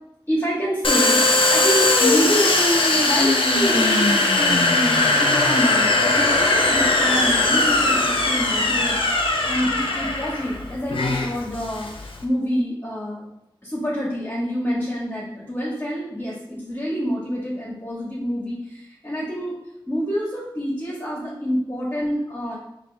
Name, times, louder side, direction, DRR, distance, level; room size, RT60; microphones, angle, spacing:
voice 1, 0.3-2.5 2.9-13.3 13.6-19.6 19.9-22.6, equal, 25° left, -7 dB, 1.1 m, -27 dB
Domestic sounds home sounds, 0.8-12.2, left 2 dB, 80° left, 0.5 m, -19 dB
4.2 x 2.5 x 3.2 m, 0.82 s
wide cardioid pair, 40°, 9 cm